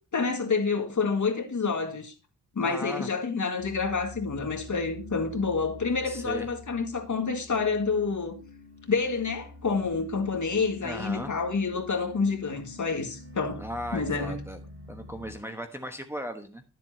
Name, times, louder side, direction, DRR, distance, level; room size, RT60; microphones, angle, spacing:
voice 1, 0.1-2.1 2.6-8.4 8.9-13.6 13.9-14.4, left 4 dB, 45° left, 1.9 m, -28 dB
voice 2, 2.6-3.1 6.0-6.5 10.8-11.3 13.6-14.6 14.9-16.6, equal, 5° right, 1.2 m, -37 dB
sound 1, 3.6-15.4, left 1 dB, 30° right, 4.3 m, -46 dB
12.0 x 7.6 x 2.8 m
wide cardioid pair, 100°, 41 cm